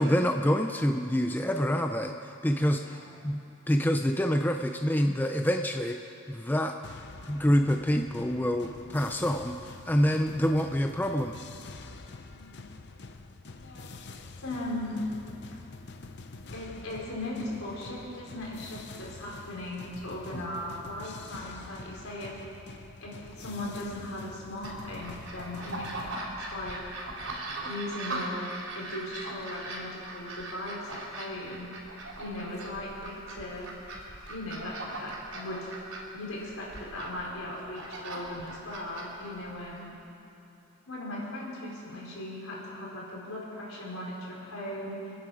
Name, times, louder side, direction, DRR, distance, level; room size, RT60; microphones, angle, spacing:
voice 1, 0.0-2.1 2.4-6.0 6.3-6.8 7.3-11.3, equal, 10° left, 5 dB, 0.5 m, -27 dB
voice 2, 2.7-3.1 12.3-12.7 13.6-14.0 14.4-15.0 16.5-22.4 23.0-26.9 27.6-28.5 28.7-31.7 32.2-33.7 34.3-35.7 36.1-39.9 40.9-45.1, left 1 dB, 80° left, -4 dB, 4.5 m, -38 dB
sound 1, 6.8-26.1, left 3 dB, 55° left, 0.7 m, -46 dB
sound 2, 24.6-39.8, right 2 dB, 75° right, 3.5 m, -40 dB
29.5 x 10.0 x 5.0 m, 2.8 s
head